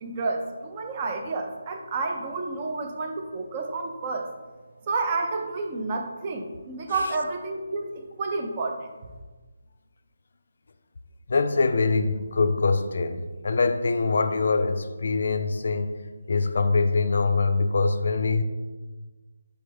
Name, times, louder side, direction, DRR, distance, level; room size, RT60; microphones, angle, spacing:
voice 1, 0.0-4.3 4.9-8.9, right 3 dB, 25° right, 3 dB, 0.4 m, -30 dB
voice 2, 11.3-15.9 16.3-18.4, left 4 dB, 55° left, 9 dB, 0.3 m, -24 dB
4.4 x 3.2 x 3.4 m, 1.3 s
figure-of-eight pair, 165°, 0 cm